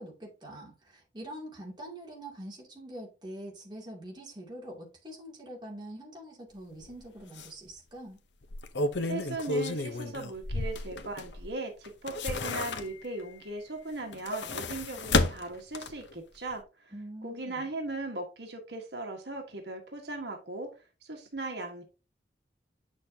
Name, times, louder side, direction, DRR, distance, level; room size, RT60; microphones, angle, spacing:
voice 1, 0.0-8.2 16.9-17.7, right 1 dB, 25° right, 2.6 m, -44 dB
sound 1, 6.8-7.0 7.4-7.5 8.4-11.5 11.8-13.2 14.0-16.1 16.5-16.6, left 2 dB, 85° left, 0.8 m, -32 dB
voice 2, 9.0-16.9 17.2-20.7 21.0-21.8, right 2 dB, 75° right, 1.5 m, -38 dB
8.4 x 6.3 x 2.8 m
head